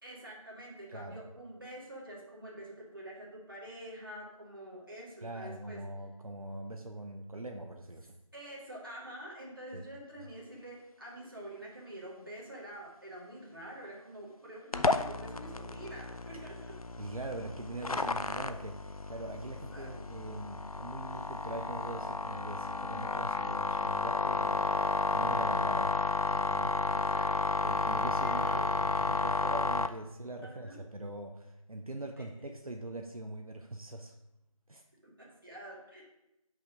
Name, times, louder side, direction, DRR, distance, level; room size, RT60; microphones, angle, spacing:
voice 1, 0.0-5.8 8.3-16.8 19.7-19.9 21.0-21.3 26.9-27.6 28.2-28.9 30.4-30.8 32.2-32.5 35.0-36.0, right 1 dB, 40° right, -4 dB, 1.8 m, -47 dB
voice 2, 5.2-8.1 9.7-9.8 17.0-25.9 26.3-26.8 27.6-34.1 34.7-34.8, right 2 dB, 80° right, 3 dB, 0.8 m, -42 dB
sound 1, 14.7-29.9, left 3 dB, 80° left, 0.5 m, -32 dB
5.8 x 5.3 x 5.0 m, 0.89 s
figure-of-eight pair, 170°, 18 cm